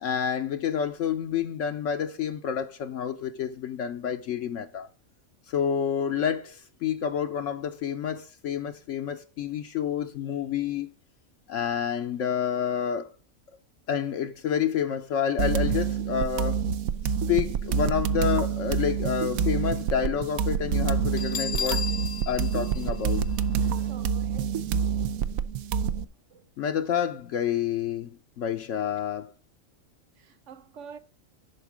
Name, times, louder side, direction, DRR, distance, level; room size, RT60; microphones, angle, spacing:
voice 1, 0.0-4.9 5.5-10.9 11.5-13.1 13.9-16.6 17.0-21.9 22.3-23.2 26.6-29.3, left 8 dB, 70° left, 1.0 m, -29 dB
sound 1, 15.4-26.0, right 7 dB, 90° right, 1.1 m, -27 dB
Bell, 21.2-23.9, left 6 dB, 55° left, 0.5 m, -34 dB
voice 2, 23.9-24.5 26.3-26.5 28.5-28.6 30.2-31.0, right 7 dB, 65° right, 1.2 m, -46 dB
11.0 x 4.0 x 6.0 m
omnidirectional pair, 1.4 m